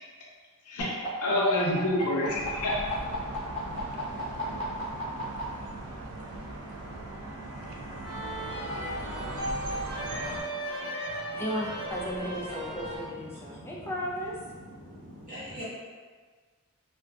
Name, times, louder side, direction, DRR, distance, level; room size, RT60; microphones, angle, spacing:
voice 1, 0.7-2.8, left 1 dB, 85° left, -3 dB, 0.6 m, -27 dB
sound 1, 0.8-5.4 6.6-8.8, left 2 dB, 30° left, 0.8 m, -40 dB
sound 2, 2.3-10.4, right 2 dB, 70° right, 0.4 m, -39 dB
sound 3, 8.0-13.1, right 1 dB, 85° right, 0.9 m, -36 dB
voice 2, 11.4-14.4, equal, 10° left, -3 dB, 0.3 m, -35 dB
voice 3, 12.6-13.8 14.6-15.6, equal, 35° right, -10 dB, 1.0 m, -45 dB
2.5 x 2.3 x 2.2 m, 1.5 s
head